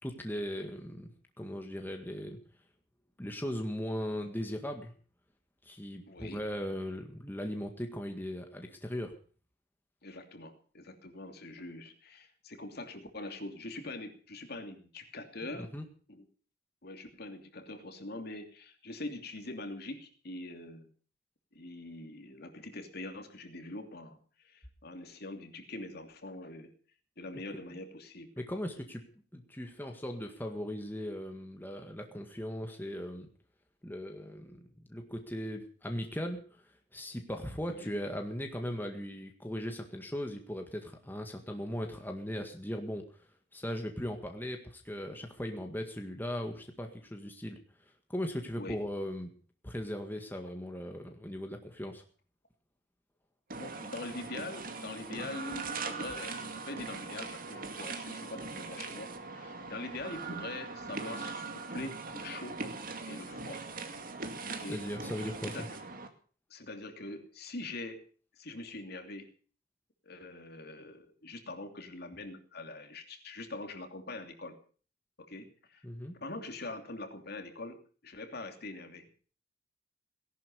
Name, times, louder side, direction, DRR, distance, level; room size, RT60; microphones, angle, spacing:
voice 1, 0.0-2.4 3.2-4.9 5.6-9.2 15.5-15.8 28.4-29.0 29.3-33.3 33.8-34.6 34.9-47.6 48.1-49.3 49.6-52.0 64.5-65.7 75.8-76.2, equal, 10° left, 4 dB, 1.8 m, -38 dB
voice 2, 6.1-6.4 10.0-15.7 16.1-16.2 16.8-20.9 21.5-26.7 27.2-28.3 37.7-37.9 48.5-48.8 53.5-62.6 63.1-63.6 64.5-64.8 65.5-65.8 66.5-68.0 68.4-69.3 70.0-74.6 75.2-75.9 76.2-79.1, left 2 dB, 55° left, 6 dB, 2.9 m, -43 dB
sound 1, 53.5-66.1, right 4 dB, 50° right, 2.3 m, -41 dB
18.5 x 11.5 x 6.8 m, 0.42 s
head